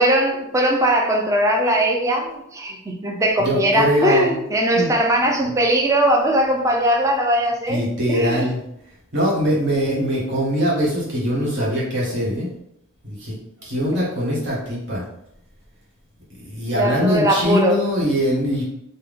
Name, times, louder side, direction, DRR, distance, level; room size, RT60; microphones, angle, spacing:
voice 1, 0.0-7.8 8.1-8.5 16.7-17.8, right 1 dB, 15° right, 0 dB, 0.5 m, -19 dB
voice 2, 3.4-4.4 4.7-4.9 7.7-8.6 9.1-12.5 13.0-13.4 13.6-15.0 16.3-18.6, equal, 60° right, -5 dB, 1.4 m, -22 dB
3.5 x 2.2 x 3.5 m, 0.77 s
head